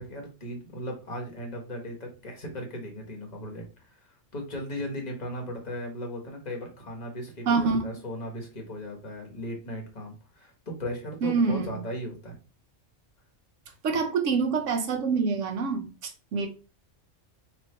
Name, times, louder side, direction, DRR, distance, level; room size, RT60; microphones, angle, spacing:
voice 1, 0.0-12.4, left 1 dB, 35° left, 1 dB, 1.4 m, -37 dB
voice 2, 7.5-7.9 11.2-11.8 13.8-16.5, right 4 dB, 75° right, 5 dB, 1.2 m, -26 dB
3.2 x 3.1 x 4.3 m, 0.33 s
omnidirectional pair, 1.3 m